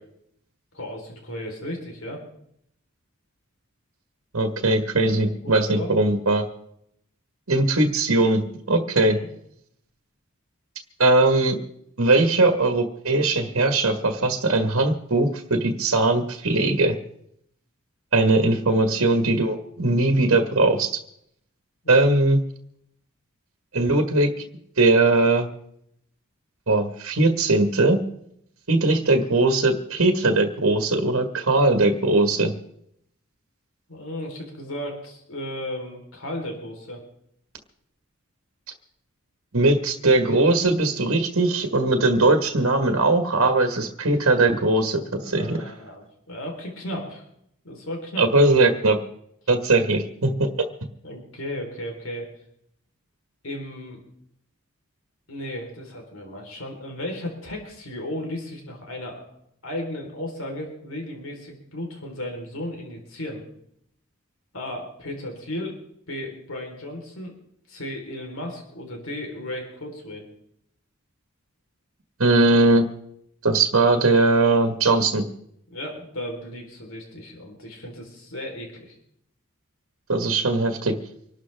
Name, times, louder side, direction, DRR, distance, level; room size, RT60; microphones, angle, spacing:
voice 1, 0.7-2.2 5.0-6.1 8.7-9.3 21.8-22.0 33.9-37.0 45.2-47.2 47.6-48.3 51.0-52.3 53.4-54.0 55.3-59.3 59.6-63.4 64.5-65.8 66.1-67.3 67.7-70.3 75.7-79.0, left 1 dB, 75° left, 1 dB, 4.1 m, -35 dB
voice 2, 4.3-6.4 7.5-8.4 8.7-9.2 11.0-11.6 12.0-16.9 18.1-20.9 21.9-22.4 23.7-24.4 24.8-25.5 26.7-28.0 28.7-32.5 39.5-45.6 48.2-49.0 49.5-50.3 72.2-72.8 73.4-75.2 80.1-80.9, right 2 dB, 75° right, 5 dB, 1.7 m, -20 dB
25.5 x 12.5 x 3.5 m, 0.72 s
head